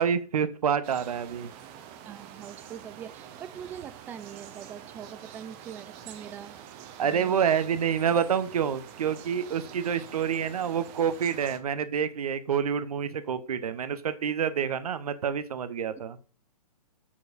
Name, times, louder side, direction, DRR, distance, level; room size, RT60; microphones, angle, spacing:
voice 1, 0.0-1.5 7.0-16.2, right 8 dB, 65° right, 13 dB, 0.8 m, -27 dB
sound 1, 0.8-11.6, right 9 dB, 30° right, 0.8 m, -46 dB
voice 2, 2.0-6.6 7.0-7.5, right 9 dB, 10° right, 14 dB, 0.3 m, -43 dB
7.2 x 6.3 x 2.5 m, 0.36 s
figure-of-eight pair, 125°, 20 cm